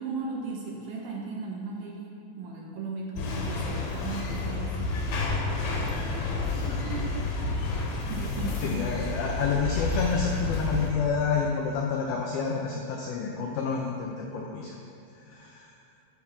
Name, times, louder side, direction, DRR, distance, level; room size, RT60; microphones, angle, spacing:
voice 1, 0.0-7.7 8.1-9.3, right 3 dB, 70° right, -3 dB, 2.6 m, -37 dB
sound 1, 3.2-10.9, left 3 dB, 70° left, 2.7 m, -30 dB
voice 2, 8.6-14.8 15.3-15.7, left 5 dB, 85° left, 0 dB, 2.1 m, -29 dB
13.5 x 4.6 x 5.8 m, 2.7 s
omnidirectional pair, 5.3 m